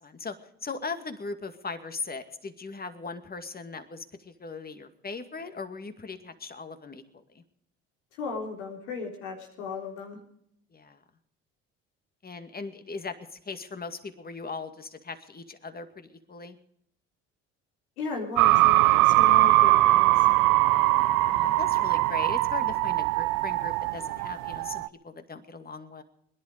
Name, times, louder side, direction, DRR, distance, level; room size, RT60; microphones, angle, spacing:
voice 1, 0.0-0.4 0.6-7.4 10.7-11.0 12.2-13.2 13.5-16.6 21.2-26.0, left 4 dB, 30° left, 8 dB, 2.2 m, -39 dB
voice 2, 8.2-10.2 18.0-20.2, left 4 dB, 90° left, 1 dB, 3.8 m, -36 dB
sound 1, 18.4-24.9, right 18 dB, 70° right, 0.7 m, -21 dB
22.0 x 11.0 x 5.1 m, 0.70 s
hypercardioid pair, 65°, 33 cm